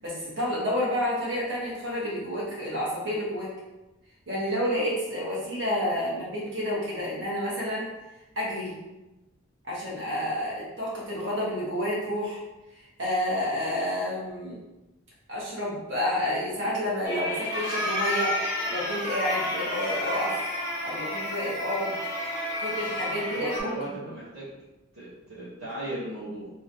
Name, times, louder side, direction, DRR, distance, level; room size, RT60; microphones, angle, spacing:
voice 1, 0.0-3.5 4.3-7.9 8.4-8.8 9.6-12.4 12.7-14.6 15.3-18.3 18.7-20.4 20.8-21.9 22.6-24.0, left 1 dB, 60° right, -6 dB, 1.1 m, -30 dB
sound 1, 17.0-23.6, left 1 dB, 55° left, 0.8 m, -31 dB
voice 2, 23.2-24.5 24.9-26.5, right 1 dB, 85° right, -10 dB, 0.9 m, -37 dB
3.0 x 2.7 x 2.6 m, 1.0 s
head